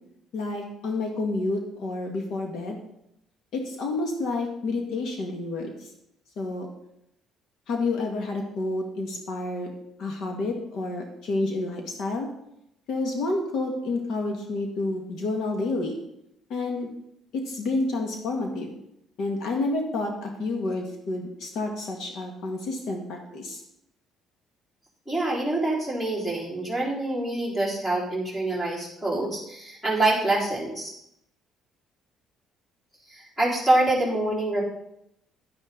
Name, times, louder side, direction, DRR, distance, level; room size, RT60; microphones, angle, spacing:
voice 1, 0.3-2.8 3.5-5.9 6.4-6.7 7.7-9.7 10.0-12.3 12.9-15.9 16.5-16.9 17.3-18.8 19.2-23.6, left 2 dB, 65° left, 2 dB, 1.8 m, -29 dB
voice 2, 25.1-30.9 33.1-34.7, right 2 dB, 10° left, -4 dB, 3.8 m, -26 dB
11.5 x 10.5 x 3.9 m, 0.79 s
cardioid pair, 160°, 0 cm